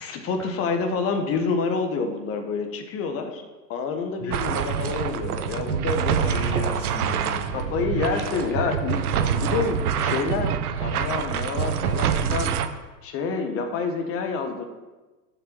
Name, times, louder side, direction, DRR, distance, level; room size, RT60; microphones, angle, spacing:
voice 1, 0.0-3.4 3.7-6.4 7.5-14.7, left 4 dB, 25° left, 6 dB, 1.3 m, -28 dB
voice 2, 4.2-4.6 6.0-8.7, left 3 dB, 5° left, -1 dB, 0.4 m, -36 dB
sound 1, 4.3-12.7, right 8 dB, 60° right, 0.9 m, -26 dB
7.2 x 5.9 x 7.5 m, 1.2 s
hypercardioid pair, 110°, 50 cm